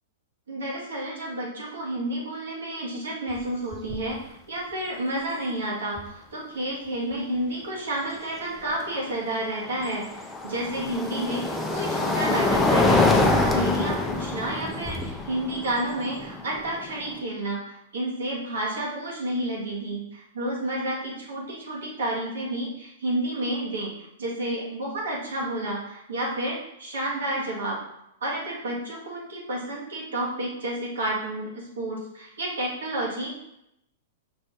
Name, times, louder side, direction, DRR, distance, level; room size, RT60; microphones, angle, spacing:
voice 1, 0.5-13.1 13.4-27.8 28.2-33.5, right 1 dB, 85° right, -3 dB, 1.6 m, -30 dB
sound 1, 3.3-3.4 3.7-4.1 6.0-6.1 9.1-17.2, left 2 dB, 10° left, 0.5 m, -25 dB
5.1 x 2.6 x 3.6 m, 0.80 s
hypercardioid pair, 125°, 0 cm